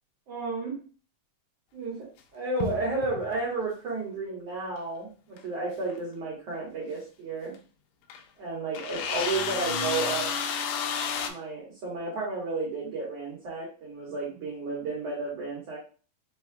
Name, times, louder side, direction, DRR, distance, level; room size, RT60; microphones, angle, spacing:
voice 1, 0.3-0.8 1.7-2.1 2.3-7.5 8.4-10.3 11.2-15.8, right 3 dB, 60° right, -5 dB, 2.3 m, -32 dB
sound 1, 2.6-3.4 5.4-5.5 5.9-6.0 7.5-7.6 8.1-8.2 8.7-11.3, left 6 dB, 80° left, 2.0 m, -31 dB
5.7 x 3.1 x 2.2 m, 0.36 s
omnidirectional pair, 3.6 m